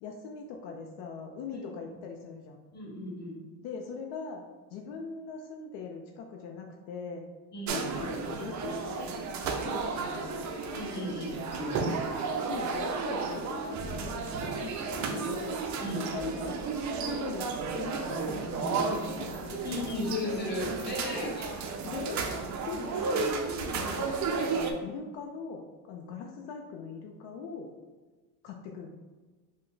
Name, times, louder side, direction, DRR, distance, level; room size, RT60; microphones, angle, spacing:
voice 1, 0.0-2.6 3.6-7.2 7.7-10.5 11.9-12.1 12.4-14.7 15.0-15.6 15.9-16.6 17.0-19.9 21.8-22.2 22.7-24.1 24.4-25.6 25.9-27.7 28.4-29.0, left 4 dB, 75° left, 2 dB, 0.5 m, -41 dB
voice 2, 2.7-3.4 7.5-7.9 10.7-12.0 15.8-16.3 19.6-21.5, left 2 dB, 25° left, -3 dB, 1.2 m, -35 dB
sound 1, 7.7-24.7, right 4 dB, 45° right, 0.4 m, -33 dB
2.9 x 2.1 x 3.8 m, 1.3 s
supercardioid pair, 95°, 44 cm